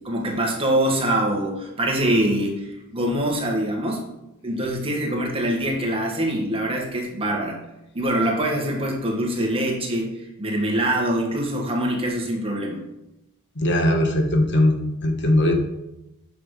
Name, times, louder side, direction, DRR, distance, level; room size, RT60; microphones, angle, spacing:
voice 1, 0.0-4.1 4.4-7.6 7.9-12.8, right 1 dB, 25° right, -1 dB, 1.7 m, -24 dB
voice 2, 13.6-15.5, left 1 dB, 55° left, 3 dB, 1.4 m, -20 dB
9.2 x 6.0 x 4.8 m, 0.90 s
head